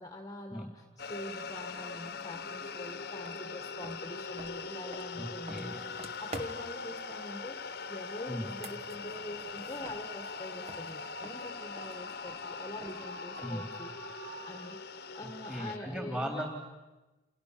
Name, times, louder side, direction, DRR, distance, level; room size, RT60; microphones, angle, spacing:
voice 1, 0.0-14.8 15.1-16.4, left 1 dB, 20° left, 5 dB, 1.8 m, -44 dB
sound 1, 1.0-15.8, left 5 dB, 50° left, 1.3 m, -42 dB
sound 2, 1.8-14.7, right 2 dB, 60° right, 3.1 m, -53 dB
sound 3, 3.2-3.4 3.8-6.8 8.3-10.4 10.7-13.7, right 2 dB, 35° right, 1.9 m, -49 dB
voice 2, 5.2-5.8 8.3-8.5 13.4-13.7 15.5-16.5, equal, 5° right, 2 dB, 3.7 m, -37 dB
29.5 x 29.0 x 6.9 m, 1.1 s
head